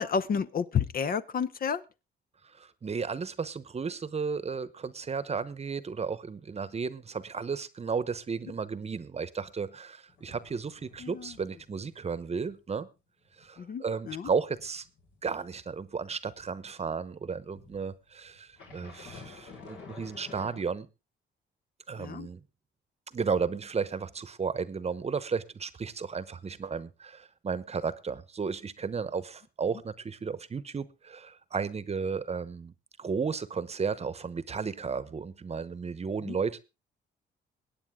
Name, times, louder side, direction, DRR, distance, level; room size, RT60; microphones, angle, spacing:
voice 1, 0.0-1.8 11.0-11.3 13.6-14.3 22.0-22.3 36.3-36.4, left 6 dB, 45° left, 0.8 m, -31 dB
voice 2, 2.4-12.9 13.4-14.9 15.2-20.9 21.9-22.4 23.1-32.7 33.0-36.6, right 5 dB, 30° right, 0.9 m, -34 dB
sound 1, 10.1-12.0 12.3-12.6 13.0-16.6 17.5-20.6, left 4 dB, 75° left, 4.5 m, -51 dB
21.5 x 8.9 x 3.6 m
cardioid pair, 90°, 20 cm